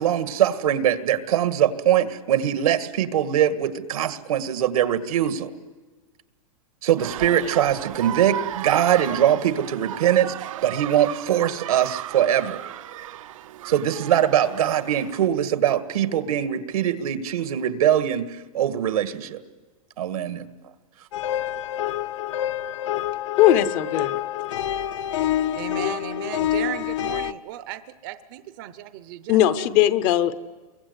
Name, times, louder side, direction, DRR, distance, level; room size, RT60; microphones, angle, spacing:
voice 1, 0.0-5.5 6.8-10.3 10.6-12.6 13.7-19.4 20.0-20.5, right 10 dB, 80° right, 10 dB, 1.9 m, -22 dB
sound 1, 7.0-15.3, right 13 dB, 65° right, 0.7 m, -35 dB
sound 2, 21.1-27.3, left 11 dB, 60° left, 0.9 m, -27 dB
voice 2, 23.4-24.1 29.3-30.4, left 12 dB, 30° left, 14 dB, 0.7 m, -19 dB
voice 3, 25.5-29.7, right 12 dB, 35° right, 12 dB, 0.8 m, -35 dB
29.5 x 23.5 x 8.2 m, 1.3 s
supercardioid pair, 175°, 18 cm